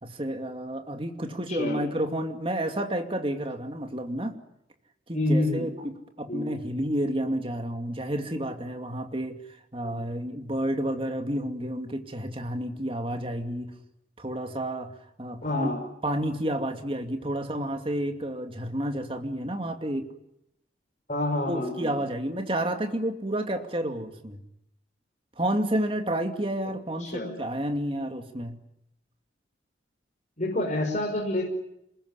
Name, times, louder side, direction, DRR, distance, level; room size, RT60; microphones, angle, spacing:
voice 1, 0.0-4.3 5.1-13.7 14.2-14.9 15.2-15.7 16.0-20.1 21.5-24.4 25.4-28.6, right 1 dB, 30° right, 5 dB, 2.5 m, -30 dB
voice 2, 1.5-1.8 5.1-5.6 6.3-6.5 9.8-10.1 15.4-15.8 21.1-21.9 27.0-27.3 30.4-31.4, left 1 dB, 40° left, 0 dB, 5.3 m, -28 dB
27.0 x 21.0 x 9.9 m, 0.82 s
head